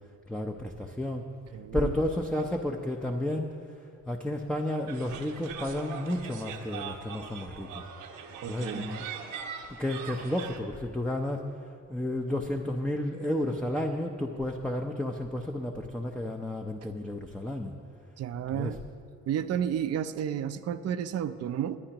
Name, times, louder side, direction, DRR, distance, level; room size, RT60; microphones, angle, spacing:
voice 1, 0.3-1.2 1.7-3.6 4.1-7.8 8.5-9.1 9.8-11.5 11.9-17.7 18.5-18.7, left 1 dB, 5° left, 2 dB, 0.6 m, -32 dB
voice 2, 1.5-1.9 8.4-8.9 18.2-18.8 19.3-21.8, right 9 dB, 55° right, 11 dB, 0.5 m, -32 dB
sound 1, 4.9-10.6, right 7 dB, 85° right, 1.1 m, -41 dB
20.0 x 9.8 x 3.0 m, 2.4 s
cardioid pair, 90°, 30 cm